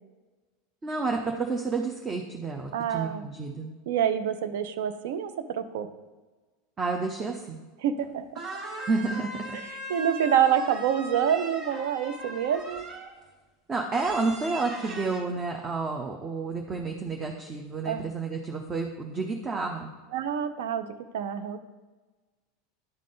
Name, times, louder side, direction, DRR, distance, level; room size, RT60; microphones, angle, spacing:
voice 1, 0.8-3.7 6.8-7.6 8.9-9.6 13.7-19.9, right 4 dB, 25° right, 2 dB, 0.7 m, -30 dB
voice 2, 2.7-3.3 3.9-5.9 7.8-8.3 9.9-12.8 17.9-18.1 20.1-20.9 21.1-21.6, right 9 dB, 65° right, 10 dB, 0.5 m, -27 dB
sound 1, 8.0-8.1 8.4-13.2 13.9-15.2, right 1 dB, 40° right, 1.4 m, -39 dB
11.0 x 3.7 x 3.9 m, 1.3 s
hypercardioid pair, 85°, 0 cm